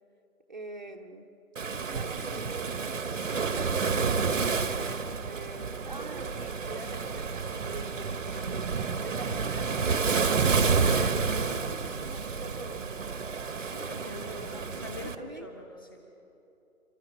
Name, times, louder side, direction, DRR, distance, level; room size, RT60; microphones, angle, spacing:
voice 1, 0.5-1.2 1.6-8.7 9.0-13.1 14.2-15.5, right 2 dB, 30° right, 3 dB, 1.0 m, -45 dB
Waves surf, 1.6-15.2, right 5 dB, 60° right, 1.2 m, -30 dB
voice 2, 13.5-16.0, left 2 dB, 15° left, 1 dB, 1.3 m, -44 dB
27.5 x 13.5 x 9.0 m, 2.9 s
hypercardioid pair, 175°, 43 cm